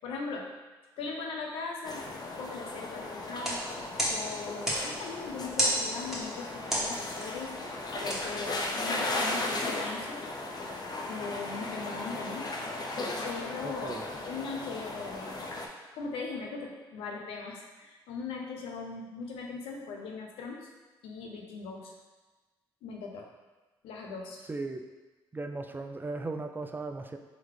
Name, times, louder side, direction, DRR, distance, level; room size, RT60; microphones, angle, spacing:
voice 1, 0.0-0.5 1.0-2.1 2.4-3.6 4.1-7.5 8.0-10.2 11.1-12.5 13.2-14.0 14.3-15.4 15.9-20.7 21.0-21.9 22.8-23.3 23.8-24.4, left 4 dB, 85° left, 1 dB, 0.6 m, -39 dB
sound 1, 1.8-15.7, left 2 dB, 45° left, 0.6 m, -36 dB
sound 2, 3.3-9.1, equal, 5° right, 1.5 m, -34 dB
voice 2, 13.6-14.0 24.5-24.9 25.3-27.2, right 3 dB, 20° right, 6 dB, 0.3 m, -37 dB
3.8 x 3.0 x 3.2 m, 1.2 s
supercardioid pair, 65°, 9 cm